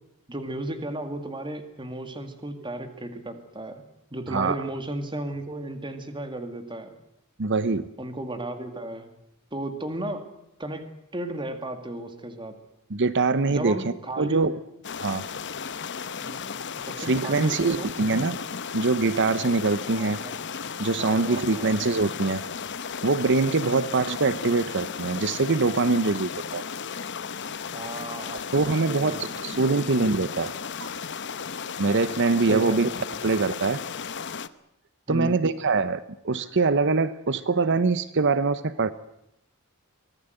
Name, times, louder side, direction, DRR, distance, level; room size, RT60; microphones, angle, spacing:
voice 1, 0.3-3.8 4.1-6.9 8.0-9.1 9.5-10.3 10.6-10.9 11.1-12.5 13.5-14.5 16.2-16.5 16.8-17.9 20.0-20.4 21.0-21.7 23.6-23.9 27.7-28.4 28.9-29.4 29.7-29.9 32.5-32.9 35.1-35.4, right 1 dB, 20° right, 8 dB, 2.1 m, -34 dB
voice 2, 7.4-7.9 12.9-13.8 14.2-14.5 15.0-15.2 17.0-18.3 18.7-20.2 20.8-22.4 23.0-26.6 28.5-30.5 30.8-30.9 31.8-32.9 33.2-33.8 35.1-38.9, right 3 dB, 55° right, 15 dB, 0.8 m, -23 dB
sound 1, 14.8-34.5, left 6 dB, 55° left, 0.9 m, -35 dB
24.0 x 17.5 x 7.9 m, 0.81 s
head